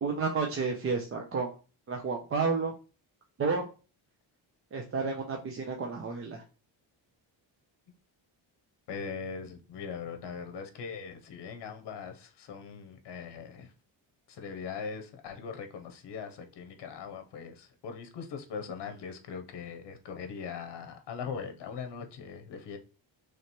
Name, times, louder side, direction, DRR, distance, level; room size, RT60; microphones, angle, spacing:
voice 1, 0.0-1.5 1.9-2.7 3.4-3.7 4.7-6.4, right 4 dB, 30° right, 0.4 m, -31 dB
voice 2, 8.9-13.7 14.3-22.8, left 6 dB, 60° left, 0.9 m, -40 dB
3.2 x 3.0 x 4.2 m
cardioid pair, 165°, 46 cm